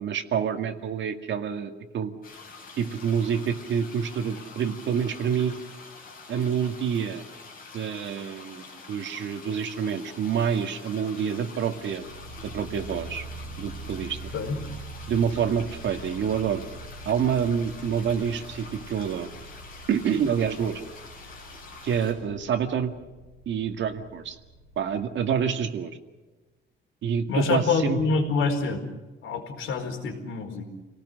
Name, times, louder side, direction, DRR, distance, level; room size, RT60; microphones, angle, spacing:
voice 1, 0.0-2.1 2.8-5.6 6.3-7.2 7.7-12.0 12.4-13.3 13.6-14.2 15.1-16.6 17.1-19.3 19.9-20.8 21.8-22.9 23.5-24.4 24.8-26.0 27.0-28.0, right 7 dB, 65° right, 6 dB, 2.0 m, -27 dB
sound 1, 2.2-22.1, left 4 dB, 45° left, 7.6 m, -46 dB
sound 2, 11.6-25.0, right 2 dB, 65° left, 5.6 m, -44 dB
voice 2, 27.3-28.8 29.2-30.7, left 4 dB, 90° left, 4 dB, 4.5 m, -26 dB
29.0 x 18.5 x 6.4 m, 1.2 s
cardioid pair, 175°, 20 cm